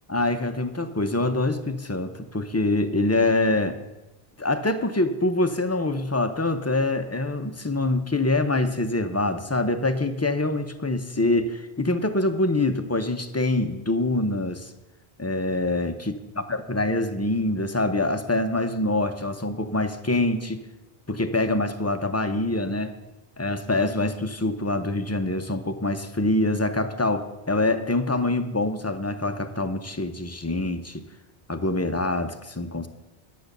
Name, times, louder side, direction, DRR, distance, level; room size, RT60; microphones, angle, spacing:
voice 1, 0.1-3.8 4.4-14.7 15.2-20.6 21.1-22.9 23.4-31.0 31.5-32.9, left 2 dB, 20° left, 7 dB, 0.5 m, -25 dB
10.5 x 7.3 x 6.6 m, 1.0 s
omnidirectional pair, 1.1 m